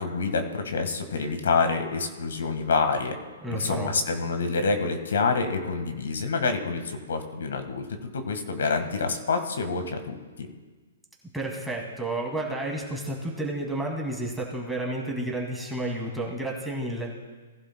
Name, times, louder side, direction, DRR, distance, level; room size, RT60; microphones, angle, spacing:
voice 1, 0.0-3.1 3.5-7.8 8.1-10.5, left 4 dB, 80° left, 6 dB, 1.5 m, -27 dB
voice 2, 3.4-3.9 11.3-17.1, right 1 dB, 5° right, -2 dB, 2.3 m, -31 dB
18.5 x 11.5 x 2.2 m, 1.4 s
hypercardioid pair, 140°, 0 cm